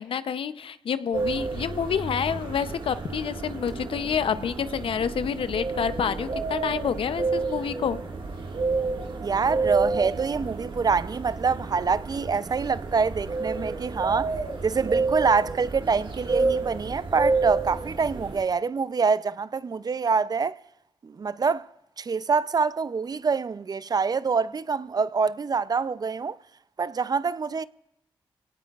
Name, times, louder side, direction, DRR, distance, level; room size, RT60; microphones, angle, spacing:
voice 1, 0.0-8.0, left 7 dB, 75° left, 0.6 m, -28 dB
sound 1, 1.1-18.4, right 3 dB, 60° right, 1.7 m, -30 dB
voice 2, 9.2-14.3 14.6-20.6 21.0-21.7 22.0-26.4 26.8-27.6, right 5 dB, 45° right, 0.4 m, -25 dB
25.0 x 17.5 x 2.4 m
cardioid pair, 50°, 9 cm